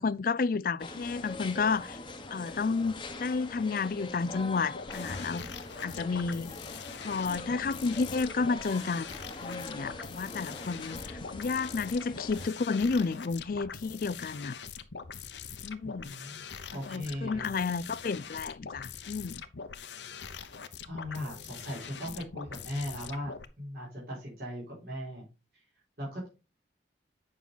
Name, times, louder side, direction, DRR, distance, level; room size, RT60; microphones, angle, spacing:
voice 1, 0.0-2.0 2.3-5.5 5.8-6.6 7.0-9.1 9.3-14.6 15.6-16.2 16.9-19.4, left 4 dB, 50° left, 0.4 m, -31 dB
sound 1, 0.8-12.5, left 2 dB, 25° left, 1.1 m, -43 dB
sound 2, 4.7-23.5, left 6 dB, 75° left, 0.9 m, -43 dB
voice 2, 15.8-16.4 16.7-17.5 20.9-25.2 26.0-26.3, left 1 dB, 55° right, 4.8 m, -38 dB
9.4 x 6.1 x 4.0 m
head